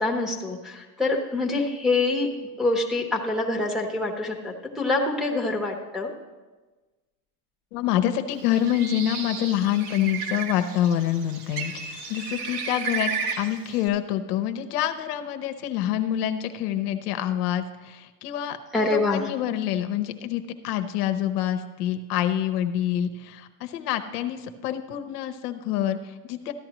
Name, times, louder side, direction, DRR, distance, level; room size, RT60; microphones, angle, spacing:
voice 1, 0.0-6.1 18.7-19.3, left 2 dB, ahead, -2 dB, 0.9 m, -26 dB
voice 2, 7.7-13.1 13.4-26.5, left 11 dB, 75° left, 8 dB, 0.9 m, -27 dB
Bird, 8.3-13.9, right 6 dB, 75° right, 1.3 m, -33 dB
14.0 x 10.5 x 3.0 m, 1.2 s
supercardioid pair, 135°, 46 cm